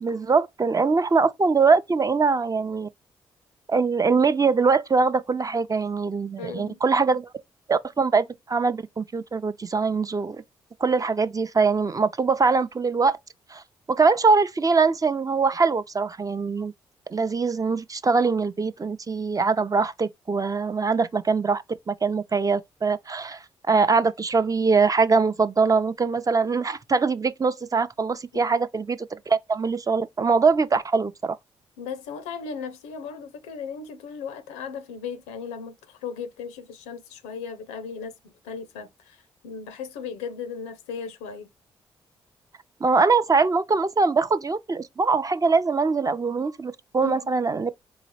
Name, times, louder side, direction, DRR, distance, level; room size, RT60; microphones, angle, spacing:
voice 1, 0.0-2.9 3.7-7.3 7.7-10.4 10.8-13.2 13.5-13.6 13.9-16.7 17.1-23.4 23.7-31.4 42.8-47.7, right 4 dB, 30° right, 0.5 m, -22 dB
voice 2, 6.4-6.8 28.3-28.4 31.8-41.5 47.0-47.3, left 6 dB, 85° left, 0.5 m, -36 dB
3.9 x 2.8 x 3.1 m
hypercardioid pair, 45°, 12 cm